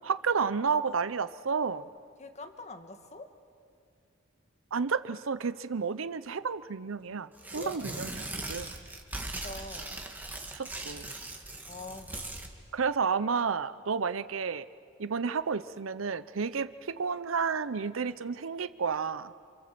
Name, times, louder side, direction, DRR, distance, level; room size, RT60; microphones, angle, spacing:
voice 1, 0.0-1.9 4.7-8.7 10.5-11.1 12.7-14.7 15.0-19.3, right 5 dB, 85° right, 14 dB, 0.7 m, -31 dB
voice 2, 2.2-3.3 7.5-7.8 9.4-10.0 11.7-12.1, left 2 dB, 35° left, 7 dB, 1.7 m, -43 dB
Tearing, 7.3-12.5, right 2 dB, 10° right, 2.0 m, -40 dB
28.5 x 27.0 x 7.6 m, 2.3 s
head